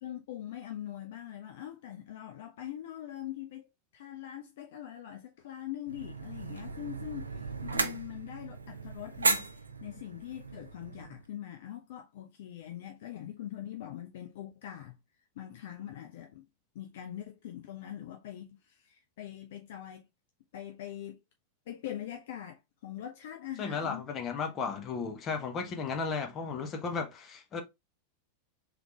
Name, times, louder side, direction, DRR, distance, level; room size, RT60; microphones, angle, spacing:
voice 1, 0.0-3.7 3.9-15.0 15.4-16.5 16.7-20.1 20.5-21.2 21.7-24.0, left 12 dB, 55° left, 0.5 m, -43 dB
sound 1, 5.9-11.2, right 3 dB, 75° right, 0.5 m, -35 dB
voice 2, 23.6-27.6, left 5 dB, 30° left, 1.1 m, -34 dB
3.5 x 3.3 x 3.4 m
figure-of-eight pair, 90°, 0 cm